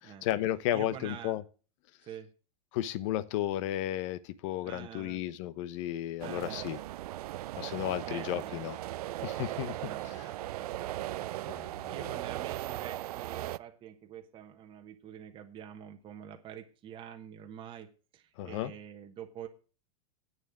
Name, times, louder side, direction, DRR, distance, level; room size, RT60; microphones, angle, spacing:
voice 1, 0.0-1.4 2.7-6.8 7.6-8.8 9.2-9.8 10.0-10.3 11.5-12.0 18.4-18.7, left 13 dB, 50° left, 1.0 m, -34 dB
voice 2, 0.7-1.4 2.0-2.3 4.6-5.2 6.2-6.6 8.0-8.7 9.8-17.9 18.1-19.5, right 9 dB, 25° right, 1.3 m, -47 dB
sound 1, 6.2-13.6, right 15 dB, 75° right, 0.5 m, -38 dB
9.2 x 6.6 x 8.7 m
supercardioid pair, 140°, 20 cm